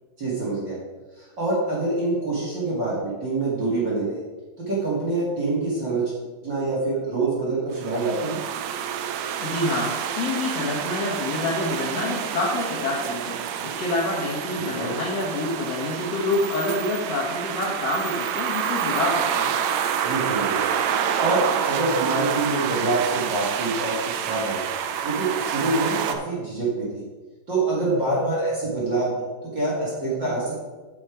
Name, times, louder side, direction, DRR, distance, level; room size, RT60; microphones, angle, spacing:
voice 1, 0.2-0.8 1.2-4.2 4.6-6.1 6.4-8.4 14.6-15.0 20.0-20.6 21.2-24.7 25.0-27.0 27.5-30.6, right 2 dB, 40° right, -6 dB, 2.3 m, -26 dB
Atmosphere - Cars at the street (Loop), 7.8-26.1, right 8 dB, 80° right, 2.3 m, -28 dB
voice 2, 9.4-13.4 13.6-19.5, left 2 dB, 60° left, -4 dB, 2.0 m, -27 dB
8.7 x 6.2 x 4.8 m, 1.3 s
omnidirectional pair, 4.1 m